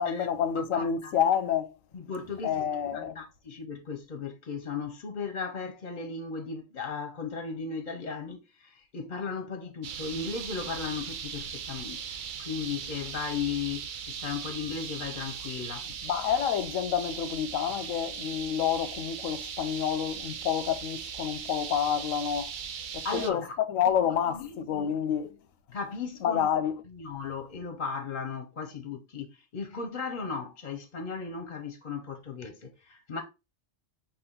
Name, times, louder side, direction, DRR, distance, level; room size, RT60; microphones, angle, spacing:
voice 1, 0.0-1.7 2.4-3.2 16.0-22.5 22.9-25.4 26.2-26.8, left 8 dB, 90° left, 1.0 m, -28 dB
voice 2, 0.5-1.1 1.9-2.6 2.9-12.0 12.4-15.9 23.0-23.5 23.9-24.9 25.7-26.5 26.9-33.2, left 5 dB, 45° left, 0.6 m, -36 dB
sound 1, 9.8-23.3, right 7 dB, 60° right, 0.5 m, -39 dB
5.1 x 2.4 x 3.7 m
omnidirectional pair, 1.3 m